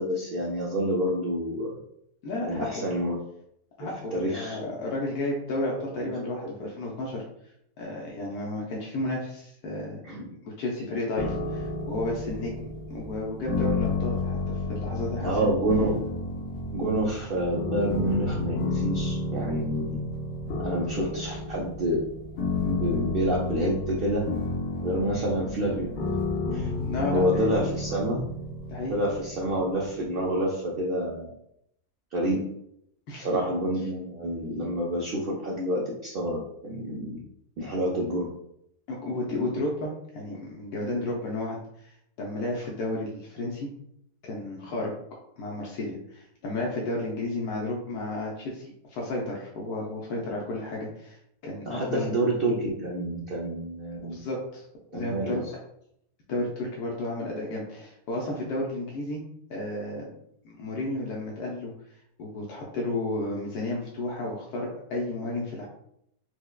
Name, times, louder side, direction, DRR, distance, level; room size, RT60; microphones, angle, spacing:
voice 1, 0.0-1.8 2.5-3.2 3.8-4.7 6.6-6.7 10.0-10.3 15.2-16.0 16.7-20.0 20.6-22.0 22.6-24.2 24.8-25.9 26.5-26.7 27.1-28.3 28.9-31.3 32.1-32.5 33.2-37.2 37.6-38.3 51.6-54.2 54.9-55.4, right 1 dB, 85° right, -3 dB, 0.5 m, -28 dB
voice 2, 2.2-2.9 3.8-7.2 7.8-10.0 10.4-15.5 26.8-27.7 28.7-28.9 33.1-33.3 38.9-43.7 44.2-44.9 45.4-52.1 54.0-54.6 54.9-55.4 56.3-59.2 59.5-60.1 60.4-61.7 62.2-65.7, left 2 dB, 80° left, -3 dB, 1.1 m, -32 dB
sound 1, 11.2-30.1, left 3 dB, 65° left, 0.7 m, -31 dB
4.5 x 2.0 x 2.2 m, 0.74 s
omnidirectional pair, 1.6 m